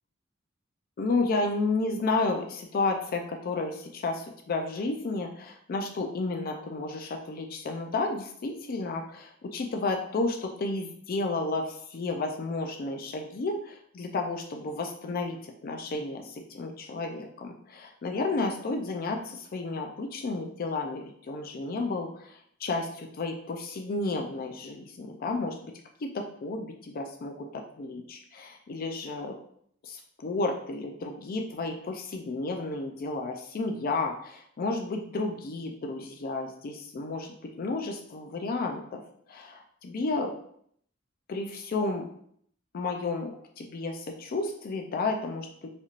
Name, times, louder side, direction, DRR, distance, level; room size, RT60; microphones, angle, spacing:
voice 1, 1.0-15.4 15.6-25.6 26.0-29.4 29.8-37.3 37.6-39.0 39.3-40.3 41.3-42.0 42.7-43.3 43.6-45.7, left 3 dB, 45° left, 3 dB, 0.4 m, -32 dB
4.2 x 2.9 x 2.4 m, 0.65 s
head